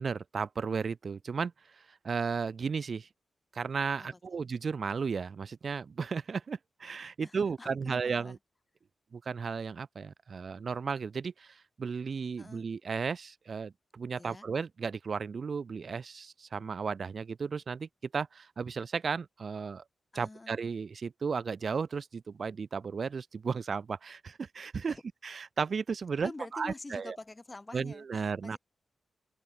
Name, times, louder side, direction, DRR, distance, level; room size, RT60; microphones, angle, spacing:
voice 1, 0.0-3.1 3.5-8.4 9.1-19.8 20.1-25.0 25.2-27.2 27.7-28.6, right 5 dB, 65° right, 0.8 m, -34 dB
voice 2, 4.0-4.4 7.2-8.4 12.4-12.7 14.2-14.5 20.1-20.5 24.9-25.0 26.2-28.6, left 2 dB, 30° left, 3.1 m, -47 dB
cardioid pair, 50°, 0 cm